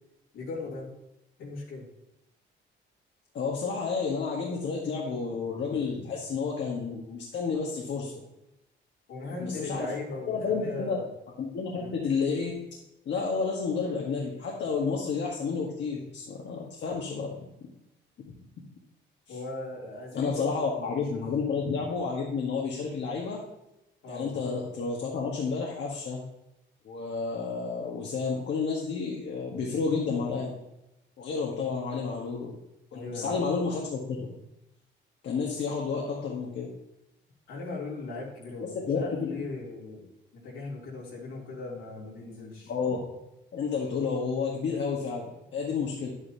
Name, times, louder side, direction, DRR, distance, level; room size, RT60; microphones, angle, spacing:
voice 1, 0.3-0.9 1.4-1.9 9.1-11.1 11.7-11.9 19.3-21.2 24.0-24.3 32.9-33.4 37.5-40.1 40.3-42.7, left 3 dB, 85° left, -4 dB, 3.1 m, -38 dB
voice 2, 3.3-8.1 9.4-9.9 10.3-11.0 11.4-12.5 13.0-17.4 19.3-19.4 20.1-23.4 24.1-26.2 26.8-30.5 31.2-32.5 32.9-34.3 35.2-36.7 38.9-39.4 42.7-43.0 43.5-46.1, left 5 dB, 65° left, -2 dB, 1.5 m, -30 dB
9.6 x 8.8 x 2.9 m, 0.88 s
cardioid pair, 90°, 20 cm